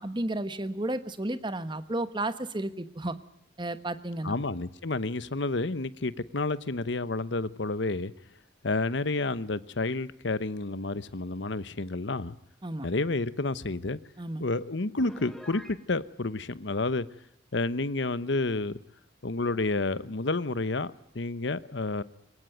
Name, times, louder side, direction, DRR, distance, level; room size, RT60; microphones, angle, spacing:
voice 1, 0.0-3.2 3.6-4.3 12.6-12.9 14.2-14.4, right 1 dB, 25° right, 12 dB, 1.2 m, -32 dB
voice 2, 4.2-8.1 8.6-12.3 12.8-14.0 14.4-17.1 17.5-18.7 19.2-22.0, left 3 dB, 60° left, 16 dB, 0.9 m, -30 dB
Piano, 15.0-15.8, left 1 dB, ahead, 1.8 m, -46 dB
22.0 x 19.5 x 9.1 m, 0.74 s
head